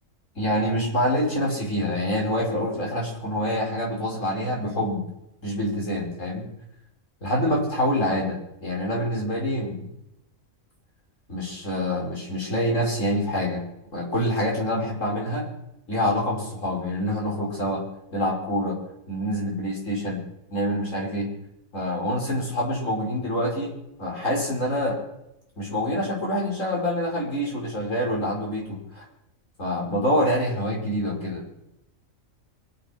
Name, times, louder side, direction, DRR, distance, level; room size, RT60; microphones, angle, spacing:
voice 1, 0.3-5.0 5.4-6.5 7.2-9.9 11.3-15.5 15.9-17.8 18.1-18.8 19.1-21.3 21.7-25.0 25.6-29.0 29.6-31.4, equal, 65° left, -2 dB, 5.9 m, -26 dB
23.0 x 9.1 x 6.1 m, 0.83 s
omnidirectional pair, 1.4 m